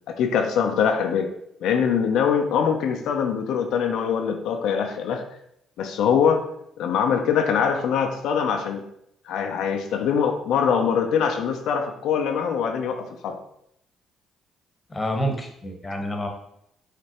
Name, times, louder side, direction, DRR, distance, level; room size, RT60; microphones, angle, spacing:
voice 1, 0.1-1.3 1.6-5.2 5.8-6.5 6.8-8.8 9.3-13.4, left 7 dB, 75° left, 5 dB, 0.5 m, -23 dB
voice 2, 14.9-16.3, equal, 25° left, 3 dB, 1.1 m, -28 dB
4.9 x 3.2 x 2.9 m, 0.74 s
hypercardioid pair, 55°, 0 cm